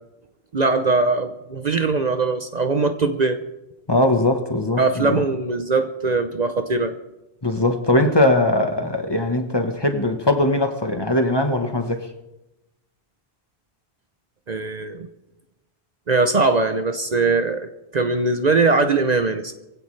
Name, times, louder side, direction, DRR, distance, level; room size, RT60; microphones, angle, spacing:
voice 1, 0.5-3.4 4.8-6.9 14.5-15.1 16.1-19.5, right 3 dB, 45° right, 0.8 m, -21 dB
voice 2, 3.9-5.2 7.4-12.1, left 1 dB, 25° left, 1.2 m, -20 dB
22.0 x 16.0 x 3.3 m
omnidirectional pair, 1.0 m